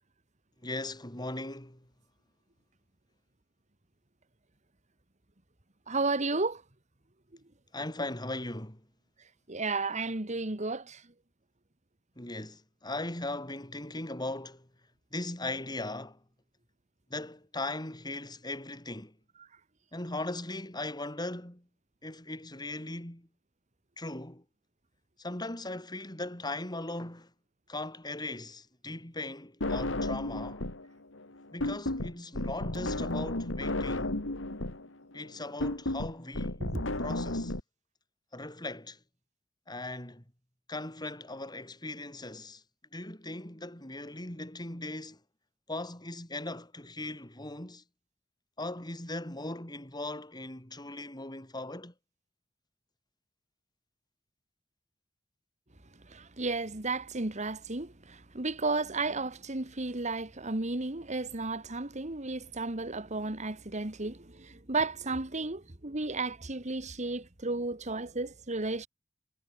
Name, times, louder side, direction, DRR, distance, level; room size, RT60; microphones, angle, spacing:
voice 1, 0.6-1.9 7.7-8.8 12.2-14.7 15.1-16.2 17.1-19.2 19.9-21.7 22.0-23.3 24.0-24.4 25.2-27.3 27.7-30.6 31.5-34.1 35.1-36.6 37.0-37.5 38.3-39.0 39.7-40.2 40.7-42.6 42.9-45.2 45.7-47.8 48.6-51.9, left 2 dB, 20° left, 4.7 m, -39 dB
voice 2, 5.9-6.6 9.5-11.0 36.6-36.8 56.1-68.9, right 3 dB, 40° right, 1.9 m, -33 dB
sound 1, 29.6-30.9 31.1-37.6, left 1 dB, 85° left, 2.6 m, -33 dB
head